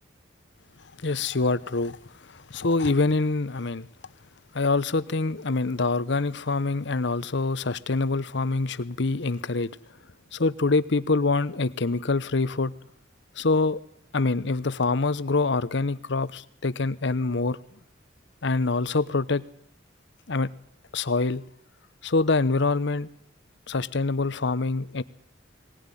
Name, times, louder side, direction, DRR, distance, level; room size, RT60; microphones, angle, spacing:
voice 1, 1.0-2.0 2.2-3.9 4.5-9.7 10.3-12.7 13.4-13.8 14.1-17.6 18.4-19.4 20.3-20.5 20.9-21.4 22.0-23.1 23.7-25.0, left 3 dB, 65° left, 0.9 m, -25 dB
19.5 x 19.5 x 9.9 m
head